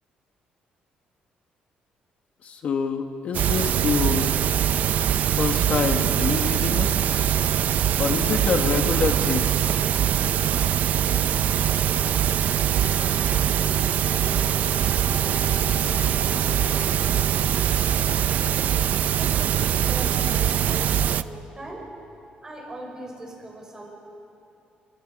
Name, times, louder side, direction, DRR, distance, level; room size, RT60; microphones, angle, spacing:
voice 1, 2.4-4.3 5.4-6.9 8.0-9.5, left 6 dB, 50° left, 4 dB, 1.5 m, -26 dB
sound 1, 3.3-21.2, right 10 dB, 60° right, 0.5 m, -22 dB
Wind instrument woodwind instrument, 12.7-17.9, left 3 dB, 15° left, 1.5 m, -41 dB
voice 2, 19.0-21.9 22.4-23.9, right 1 dB, 20° right, 0 dB, 5.2 m, -39 dB
28.0 x 26.5 x 5.3 m, 2.9 s
cardioid pair, 150°, 3 cm